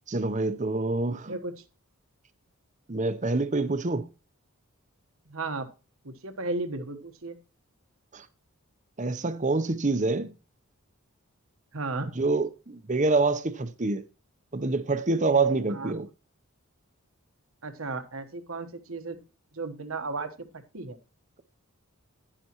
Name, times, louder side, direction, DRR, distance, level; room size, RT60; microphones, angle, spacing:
voice 1, 0.1-1.3 2.9-4.1 8.1-8.3 9.0-10.3 12.2-14.1 14.5-16.1, right 3 dB, 35° right, 0.8 m, -26 dB
voice 2, 1.1-1.6 5.3-5.7 6.0-7.4 11.7-12.1 15.7-16.0 17.6-19.2 19.5-21.0, right 3 dB, 65° right, 1.3 m, -35 dB
11.0 x 10.0 x 3.0 m
head